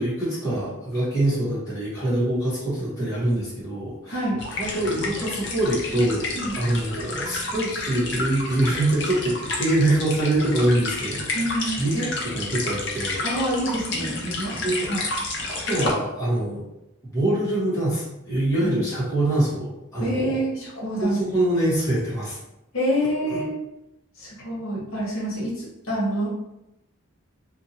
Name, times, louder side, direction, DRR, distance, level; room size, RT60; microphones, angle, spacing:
voice 1, 0.0-4.2 4.6-11.3 11.8-13.2 14.6-14.9 15.5-16.6 17.1-20.4 21.0-22.4 23.3-23.4, right 1 dB, 15° left, -10 dB, 1.2 m, -24 dB
voice 2, 4.1-4.4 6.3-6.6 11.3-11.8 13.2-15.0 18.6-18.7 20.0-21.2 22.7-23.6 24.2-26.3, equal, 85° left, -5 dB, 1.0 m, -27 dB
sound 1, 4.4-15.9, left 2 dB, 55° left, 0.6 m, -30 dB
2.6 x 2.5 x 2.8 m, 0.88 s
head